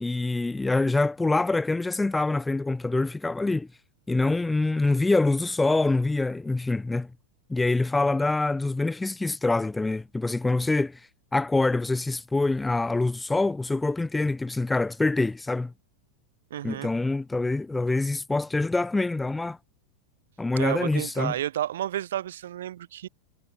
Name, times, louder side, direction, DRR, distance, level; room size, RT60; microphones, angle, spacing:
voice 1, 0.0-3.7 4.1-7.1 7.5-15.7 16.6-19.6 20.4-21.3, left 2 dB, 10° left, 0.4 m, -25 dB
voice 2, 16.5-16.9 20.6-23.1, right 12 dB, 60° right, 0.5 m, -31 dB
figure-of-eight pair, 90°, 0 cm